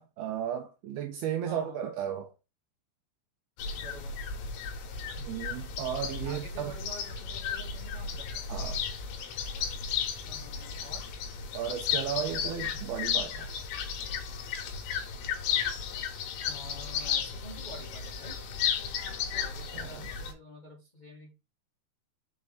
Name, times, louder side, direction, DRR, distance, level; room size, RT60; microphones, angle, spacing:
voice 1, 0.0-2.3 5.3-6.7 8.5-8.8 11.5-13.5 19.7-20.1, right 9 dB, 80° right, 2.3 m, -34 dB
voice 2, 1.4-1.8 3.8-4.2 6.2-8.5 10.2-11.1 16.4-18.4 19.3-21.3, left 1 dB, 15° left, 1.5 m, -48 dB
sound 1, 3.6-20.3, left 7 dB, 75° left, 3.1 m, -34 dB
6.2 x 4.9 x 4.1 m
omnidirectional pair, 5.0 m